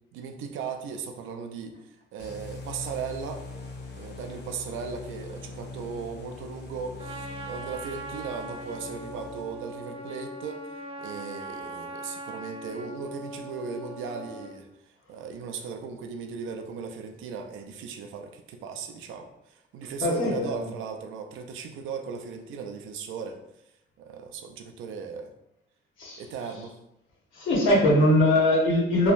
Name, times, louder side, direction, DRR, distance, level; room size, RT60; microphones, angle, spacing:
voice 1, 0.1-3.4 3.9-10.7 11.0-23.4 24.0-25.3 26.2-26.8, right 5 dB, 80° right, 4 dB, 0.4 m, -37 dB
sound 1, 2.2-9.8, left 3 dB, 60° left, 0.5 m, -42 dB
Trumpet, 7.0-14.6, right 1 dB, 30° right, 0.5 m, -40 dB
voice 2, 20.0-20.7 26.0-26.2 27.3-29.1, left 1 dB, 80° left, -3 dB, 0.9 m, -21 dB
3.0 x 2.2 x 2.5 m, 0.85 s
cardioid pair, 90°, 20 cm